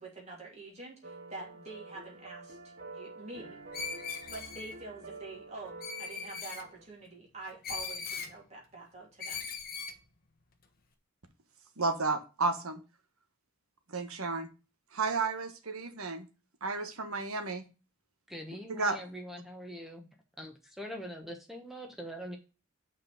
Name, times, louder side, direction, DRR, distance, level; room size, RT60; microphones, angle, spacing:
voice 1, 0.0-3.6 3.9-4.0 4.3-9.5, right 3 dB, 30° right, -2 dB, 2.9 m, -46 dB
sound 1, 1.0-6.9, right 3 dB, 50° right, 1.1 m, -48 dB
Screech, 3.7-4.7 5.8-6.6 7.6-8.3 9.2-10.0, left 5 dB, 40° left, 1.0 m, -39 dB
voice 2, 11.8-12.8 13.9-14.5 14.9-16.3 16.6-17.6 18.7-19.0, right 3 dB, 80° right, 7 dB, 1.4 m, -32 dB
voice 3, 18.3-20.1 20.4-22.4, equal, ahead, 2 dB, 1.1 m, -43 dB
5.9 x 4.7 x 5.9 m, 0.32 s
head